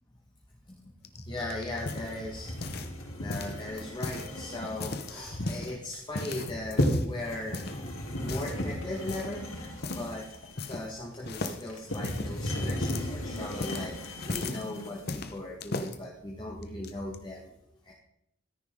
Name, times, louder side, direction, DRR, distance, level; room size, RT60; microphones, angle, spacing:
voice 1, 0.7-2.5 3.2-7.7 8.2-9.4 9.9-10.3 10.7-14.0 14.2-17.5 17.8-17.9, left 1 dB, 20° left, -2 dB, 1.5 m, -38 dB
sound 1, 1.0-3.0 3.3-4.3 4.7-5.7 6.1-7.1 7.5-7.8 8.2-8.6 9.1-9.4 9.8-10.1 10.3-11.0 11.3-14.6 15.1-16.0 16.6-17.2, left 2 dB, 50° left, 1.0 m, -37 dB
sound 2, 1.7-15.1, left 1 dB, 85° left, 2.9 m, -35 dB
13.5 x 10.5 x 3.7 m, 0.77 s
head